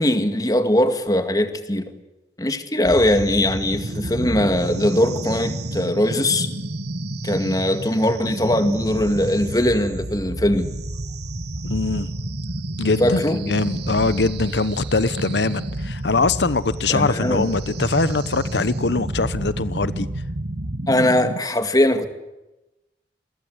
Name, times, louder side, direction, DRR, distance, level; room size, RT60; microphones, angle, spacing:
voice 1, 0.0-1.9 2.4-6.5 7.2-10.7 13.0-13.4 16.9-17.5 20.9-22.1, left 1 dB, 20° left, 2.1 m, -20 dB
sound 1, 2.8-21.4, right 1 dB, 70° right, 1.7 m, -30 dB
voice 2, 11.6-12.1 12.8-20.1, left 3 dB, 80° left, 1.0 m, -22 dB
28.5 x 22.5 x 8.2 m
head